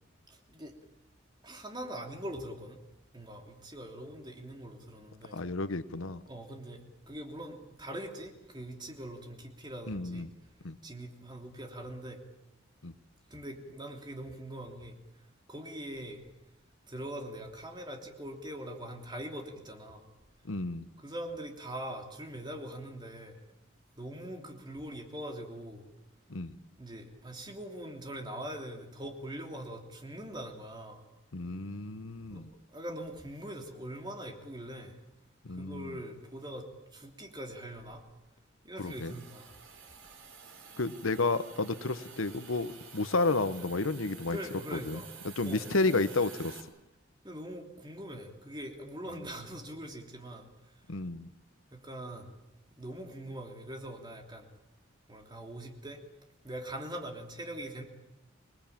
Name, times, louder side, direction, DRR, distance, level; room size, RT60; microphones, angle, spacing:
voice 1, 0.3-0.7 1.4-2.8 3.1-5.4 6.3-10.3 10.8-12.2 13.3-15.0 15.5-16.2 16.9-20.1 21.0-23.4 24.0-25.8 26.8-31.1 32.3-32.4 32.7-35.0 35.5-38.0 38.6-39.5 44.3-45.1 45.4-45.7 47.2-50.8 51.7-52.4 52.7-54.5 55.1-56.0 56.4-57.8, right 1 dB, 20° right, 3 dB, 3.1 m, -42 dB
voice 2, 5.3-6.2 9.9-10.3 10.6-10.8 12.8-12.9 20.5-20.9 26.3-26.6 31.3-32.5 35.4-36.0 38.8-39.1 40.8-44.4 44.7-45.0 45.4-46.6 50.9-51.3, left 3 dB, 75° left, 13 dB, 1.0 m, -31 dB
Hiss, 38.8-46.6, right 6 dB, 85° right, 4.6 m, -50 dB
26.5 x 20.0 x 8.8 m, 0.91 s
head